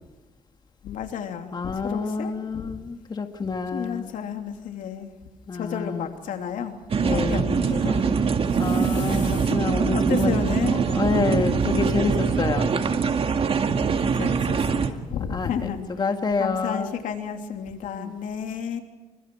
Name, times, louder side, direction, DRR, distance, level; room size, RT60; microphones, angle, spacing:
voice 1, 0.8-2.7 3.7-5.1 5.5-6.8 7.1-8.0 8.5-9.5 9.9-11.0 11.4-11.5 13.9-15.9 16.4-18.8, left 8 dB, 80° left, 5 dB, 3.1 m, -32 dB
voice 2, 1.5-4.1 5.5-6.1 6.9-7.4 7.9-8.0 8.6-10.4 10.7-12.7 15.3-15.7 16.0-16.9 17.9-18.1, left 4 dB, 35° left, 6 dB, 2.0 m, -28 dB
sound 1, 6.9-14.9, right 5 dB, 45° right, 2.1 m, -23 dB
28.5 x 25.5 x 4.7 m, 1.1 s
cardioid pair, 105°, 13 cm